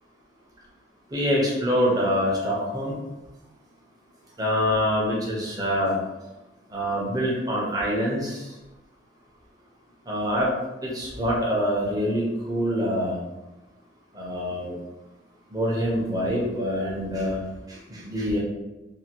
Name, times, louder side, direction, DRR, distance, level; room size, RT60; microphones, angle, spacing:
voice 1, 1.1-2.9 4.4-5.9 6.7-8.4 10.1-10.5 10.8-13.2 14.1-14.7 15.5-17.4 17.9-18.4, equal, 20° right, -4 dB, 0.6 m, -25 dB
2.7 x 2.5 x 2.8 m, 1.0 s
head